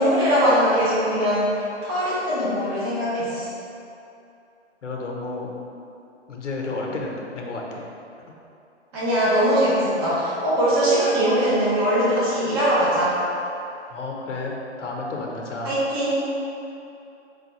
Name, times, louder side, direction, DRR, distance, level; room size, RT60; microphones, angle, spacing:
voice 1, 0.0-3.5 8.9-13.2 15.6-16.2, equal, 20° right, -10 dB, 0.6 m, -21 dB
voice 2, 4.8-5.5 6.3-7.8 8.2-8.3 13.9-15.7, left 3 dB, 85° left, -1 dB, 0.8 m, -31 dB
4.8 x 2.3 x 3.0 m, 2.7 s
hypercardioid pair, 150°, 35 cm